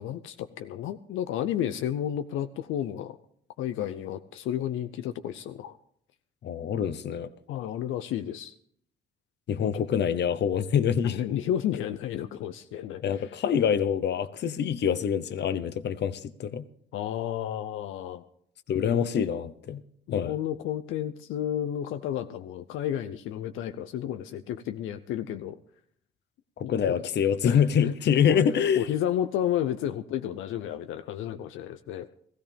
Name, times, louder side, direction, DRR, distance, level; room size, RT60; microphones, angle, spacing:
voice 1, 0.0-3.2 3.6-5.8 7.5-8.5 9.6-9.8 11.0-13.4 16.9-18.2 18.7-19.1 20.1-25.6 26.6-27.0 27.4-27.9 28.3-28.4 28.8-32.1, left 10 dB, 85° left, 10 dB, 0.6 m, -32 dB
voice 2, 6.4-7.3 9.5-11.2 13.0-16.6 18.7-19.8 20.1-20.3 26.6-28.9, left 8 dB, 60° left, 14 dB, 0.9 m, -25 dB
16.5 x 15.0 x 3.5 m, 0.65 s
cardioid pair, 90°, 20 cm